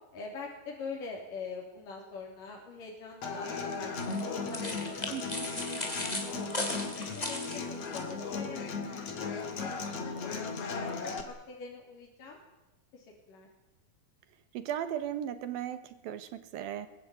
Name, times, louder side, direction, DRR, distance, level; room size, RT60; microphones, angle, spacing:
voice 1, 0.1-5.0 5.3-6.1 6.8-10.1 10.4-12.4 12.9-13.5, left 5 dB, 60° left, -2 dB, 4.9 m, -45 dB
Human voice / Acoustic guitar, 3.2-11.2, left 4 dB, 45° left, 3.0 m, -36 dB
sound 1, 4.0-8.0, left 1 dB, 10° left, 3.2 m, -37 dB
voice 2, 5.1-5.5 14.5-16.9, right 10 dB, 75° right, 12 dB, 3.2 m, -36 dB
22.0 x 21.0 x 9.4 m, 1.0 s
omnidirectional pair, 4.3 m